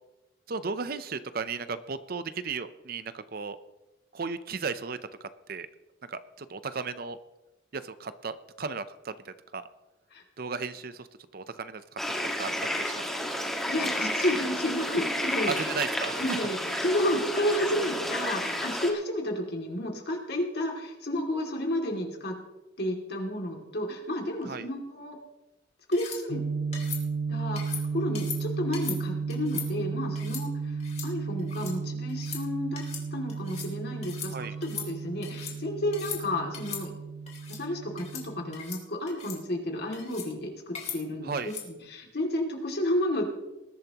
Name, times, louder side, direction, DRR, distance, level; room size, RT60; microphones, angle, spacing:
voice 1, 0.5-3.6 4.1-5.7 6.1-7.2 7.7-9.7 10.4-11.1 11.3-12.0 12.4-12.5 12.8-13.4 15.5-16.4 16.7-16.8 24.4-24.7 34.3-34.6 41.2-41.5, right 5 dB, 55° right, 13 dB, 0.6 m, -35 dB
sound 1, 12.0-18.9, equal, ahead, 1.6 m, -31 dB
voice 2, 13.7-15.5 16.2-22.4 22.8-25.2 25.9-26.4 27.3-32.9 33.1-34.3 34.6-36.9 37.5-43.3, left 1 dB, 60° left, 1 dB, 2.5 m, -31 dB
sound 2, 25.9-26.2 26.7-27.0 27.6-27.8 28.1-28.4 28.7-29.0 29.3-29.7 30.1-30.4 30.8-31.1 31.4-31.7 32.1-32.4 32.7-33.0 33.3-33.7 34.0-34.3 34.6-35.5 35.9-36.2 36.5-36.8 37.3-37.6 38.0-38.2 38.5-38.8 39.1-39.4 39.9-40.3 40.7-41.0 41.4-41.7, left 8 dB, 35° left, 2.8 m, -39 dB
sound 3, 26.3-38.6, right 5 dB, 80° right, 0.9 m, -34 dB
20.5 x 11.5 x 3.0 m, 1.0 s
head